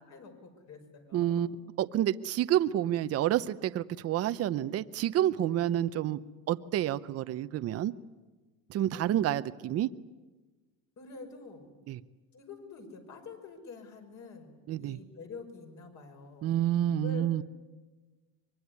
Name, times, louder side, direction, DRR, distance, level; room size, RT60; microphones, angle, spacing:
voice 1, 0.0-1.5 5.4-5.6 8.9-9.2 11.0-11.7 12.3-16.5 17.0-17.3, left 4 dB, 50° left, 4 dB, 6.0 m, -47 dB
voice 2, 1.1-1.5 1.8-6.2 6.5-7.9 8.7-9.9 11.9-12.0 14.7-15.0 16.4-17.4, right 12 dB, 40° right, 13 dB, 0.8 m, -29 dB
25.0 x 22.5 x 9.7 m, 1.3 s
cardioid pair, 140°, 37 cm